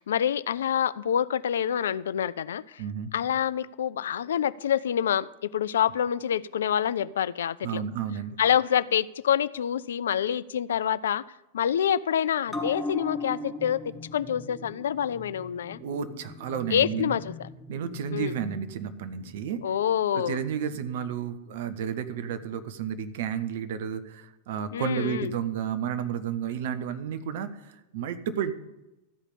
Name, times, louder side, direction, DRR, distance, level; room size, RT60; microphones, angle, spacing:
voice 1, 0.0-2.8 3.1-7.8 8.4-11.2 11.5-13.8 14.1-15.8 16.7-17.5 18.1-18.4 19.6-20.4 24.7-25.4, left 9 dB, 65° left, 18 dB, 0.3 m, -27 dB
voice 2, 2.8-3.1 7.6-8.4 15.8-17.1 17.7-19.6 20.1-28.5, right 8 dB, 55° right, 10 dB, 0.9 m, -32 dB
sound 1, 12.5-19.4 19.7-19.8, left 2 dB, 5° left, 1.4 m, -39 dB
13.5 x 4.9 x 8.5 m, 0.98 s
figure-of-eight pair, 90°, 0 cm